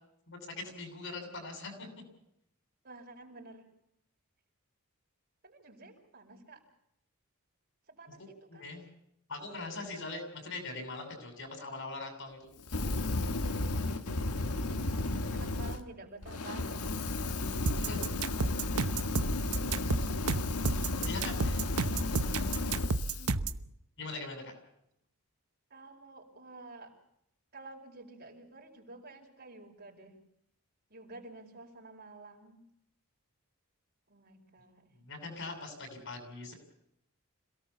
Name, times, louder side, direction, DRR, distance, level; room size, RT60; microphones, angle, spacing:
voice 1, 0.3-1.9 8.2-8.8 9.3-12.5 17.7-18.1 20.9-21.6 24.0-24.5 35.0-36.5, left 3 dB, 55° left, 5 dB, 7.5 m, -41 dB
voice 2, 2.8-3.7 5.4-6.6 7.9-8.7 13.5-14.1 15.3-16.9 21.0-21.2 21.8-22.0 23.2-23.5 25.7-26.9 27.5-30.2 30.9-32.6 34.1-34.9, right 2 dB, 45° right, 1 dB, 5.1 m, -51 dB
Fire, 12.6-15.8 16.2-23.3, left 2 dB, 85° left, 1.5 m, -33 dB
sound 1, 17.7-23.6, right 3 dB, 80° right, 1.0 m, -31 dB
27.0 x 18.0 x 7.1 m, 0.77 s
head